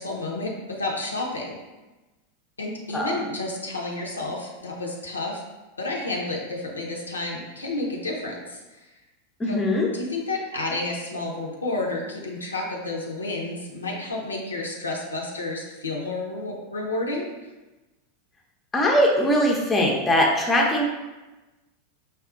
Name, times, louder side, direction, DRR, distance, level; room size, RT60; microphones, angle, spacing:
voice 1, 0.0-1.6 2.6-5.4 5.8-8.9 9.5-9.6 9.9-17.3, left 2 dB, 80° left, -1 dB, 0.6 m, -30 dB
voice 2, 9.4-9.9 18.7-20.8, left 1 dB, 15° left, -1 dB, 0.6 m, -21 dB
4.9 x 2.3 x 2.4 m, 1.1 s
figure-of-eight pair, 90°, 0 cm